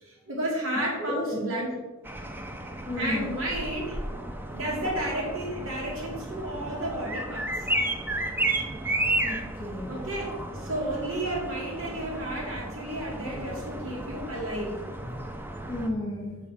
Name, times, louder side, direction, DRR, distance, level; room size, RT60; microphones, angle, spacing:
voice 1, 0.0-1.8 2.9-4.0 4.5-7.7 8.9-9.1 9.9-14.8, right 1 dB, 80° right, -3 dB, 2.7 m, -32 dB
voice 2, 1.0-1.4 2.9-3.3 9.0-10.0 15.0-15.2 15.7-16.4, left 1 dB, 20° left, -1 dB, 1.7 m, -33 dB
sound 1, 2.0-15.9, right 1 dB, 10° right, 0.7 m, -33 dB
8.3 x 4.9 x 7.3 m, 1.2 s
head